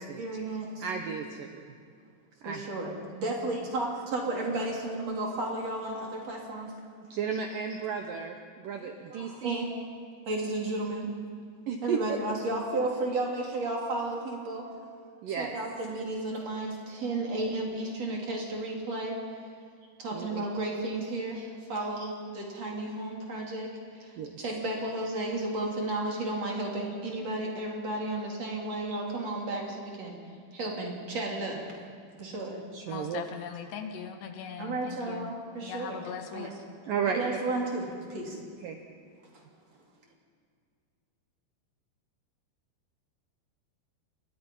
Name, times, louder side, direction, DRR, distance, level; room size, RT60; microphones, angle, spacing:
voice 1, 0.0-0.9 2.4-6.7 8.7-9.7 10.3-11.2 11.8-14.7 15.3-19.2 20.0-30.1 30.5-31.6 32.2-32.6 34.6-36.0 36.3-36.5 37.1-38.4 39.3-39.4, right 2 dB, 40° right, -1 dB, 4.1 m, -33 dB
voice 2, 0.8-1.6 2.4-2.7 7.1-9.6 11.7-12.2 15.2-15.5 20.1-20.4 24.2-24.4 32.7-33.2 36.9-37.4 38.6-38.8, right 6 dB, 70° right, 4 dB, 2.2 m, -33 dB
voice 3, 32.9-35.4 35.6-36.5, left 7 dB, 75° left, 6 dB, 3.5 m, -39 dB
28.0 x 22.5 x 5.6 m, 2.2 s
omnidirectional pair, 5.0 m